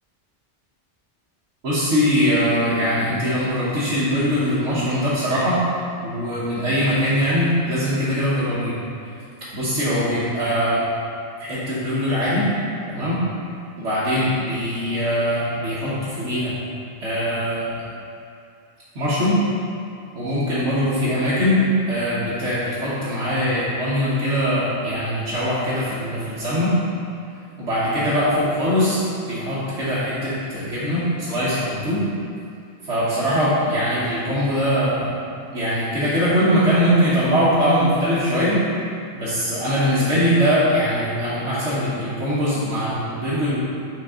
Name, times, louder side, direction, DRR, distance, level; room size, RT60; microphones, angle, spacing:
voice 1, 1.6-5.6 6.0-8.7 9.5-10.8 11.4-12.5 12.9-13.2 13.8-16.5 17.0-17.8 18.9-19.4 20.1-26.7 27.6-29.0 29.3-32.0 32.8-35.1 35.5-38.6 39.1-43.6, equal, 75° right, -11 dB, 1.4 m, -21 dB
6.2 x 4.2 x 3.6 m, 2.4 s
omnidirectional pair, 1.2 m